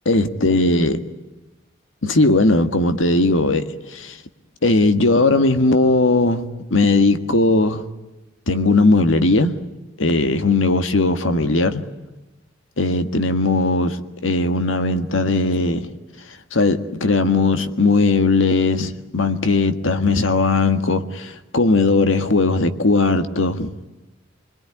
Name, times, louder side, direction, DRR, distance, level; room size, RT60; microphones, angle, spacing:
voice 1, 0.1-1.0 2.0-3.6 3.9-4.2 4.6-7.8 8.5-9.5 10.0-11.8 12.8-15.9 16.5-23.7, left 2 dB, 70° left, 1.7 m, -18 dB
27.0 x 21.5 x 9.9 m
head